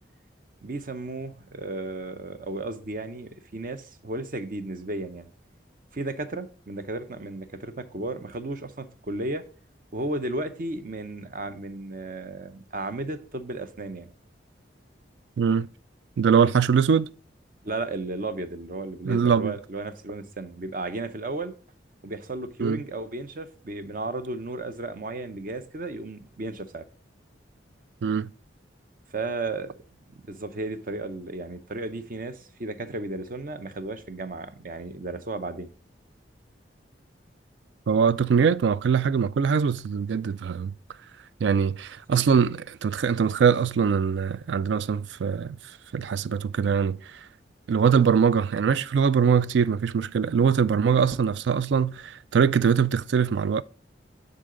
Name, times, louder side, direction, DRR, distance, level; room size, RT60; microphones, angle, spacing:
voice 1, 0.6-5.3 5.9-9.4 9.9-14.1 17.6-21.5 22.0-26.8 29.1-29.7 30.3-35.7 42.1-42.2, right 2 dB, 50° right, 0.7 m, -34 dB
voice 2, 15.4-15.7 16.2-17.1 19.0-19.5 22.6-22.8 28.0-28.3 37.9-40.7 41.4-45.6 45.9-47.2 47.7-53.6, right 6 dB, 70° right, 0.3 m, -22 dB
9.7 x 3.9 x 3.8 m
head